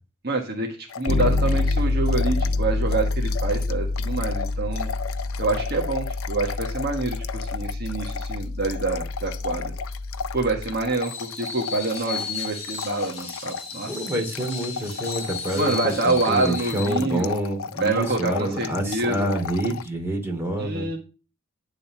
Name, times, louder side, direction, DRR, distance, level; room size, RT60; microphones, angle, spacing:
voice 1, 0.2-4.9 5.4-9.7 10.3-14.1 15.6-17.5 17.8-19.4 20.6-21.0, right 3 dB, 50° right, 1 dB, 1.5 m, -27 dB
sound 1, 0.9-2.6 2.9-19.9, left 6 dB, 85° left, 0.5 m, -35 dB
Bass guitar, 1.1-10.8, left 2 dB, 65° left, 1.0 m, -27 dB
Screech, 10.9-17.0, left 5 dB, 30° left, 3.1 m, -35 dB
voice 2, 13.8-20.9, right 1 dB, 10° right, 1 dB, 2.6 m, -27 dB
10.5 x 4.1 x 6.8 m, 0.33 s
head